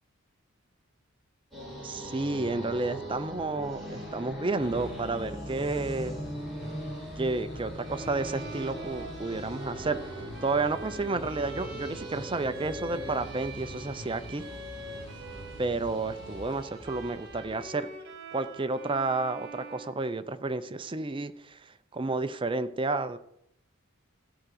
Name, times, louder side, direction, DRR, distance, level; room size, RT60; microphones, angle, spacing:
sound 1, 1.5-17.5, right 1 dB, ahead, 4.4 m, -41 dB
voice 1, 1.8-6.2 7.2-10.1 10.4-14.5 15.6-17.9 18.3-23.2, right 3 dB, 25° right, 11 dB, 0.6 m, -31 dB
sound 2, 4.6-17.9, left 1 dB, 60° left, 2.1 m, -45 dB
Bowed string instrument, 7.8-15.7 16.0-20.8, right 2 dB, 55° right, 1.5 m, -45 dB
14.5 x 4.9 x 7.8 m, 0.77 s
head